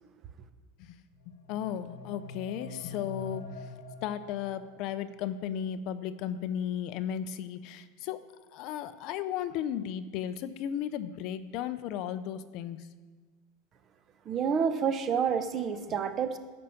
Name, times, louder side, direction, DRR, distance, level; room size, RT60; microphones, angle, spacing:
sound 1, 1.1-5.1, left 2 dB, 85° left, 1.5 m, -45 dB
voice 1, 1.3-3.7 4.0-8.2 8.5-12.9, left 9 dB, 45° left, 12 dB, 0.6 m, -35 dB
voice 2, 14.3-16.4, right 7 dB, 25° right, 10 dB, 0.7 m, -28 dB
13.5 x 5.7 x 7.0 m, 1.4 s
supercardioid pair, 160°, 0 cm